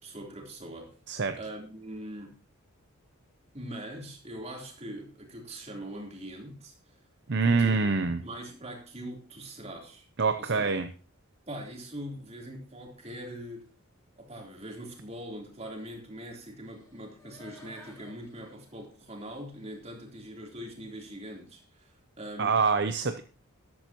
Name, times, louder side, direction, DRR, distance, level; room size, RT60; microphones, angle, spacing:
voice 1, 0.0-1.0 1.4-2.4 3.5-7.0 7.4-10.1 10.4-10.6 11.5-13.7 14.2-22.6, right 1 dB, 30° right, 1 dB, 3.6 m, -42 dB
voice 2, 1.1-1.4 7.3-8.2 10.2-10.9 22.4-23.2, right 4 dB, 50° right, 9 dB, 0.7 m, -25 dB
sound 1, 16.6-19.7 20.1-20.2, left 2 dB, 15° left, 3.7 m, -55 dB
13.5 x 12.5 x 3.0 m, 0.35 s
head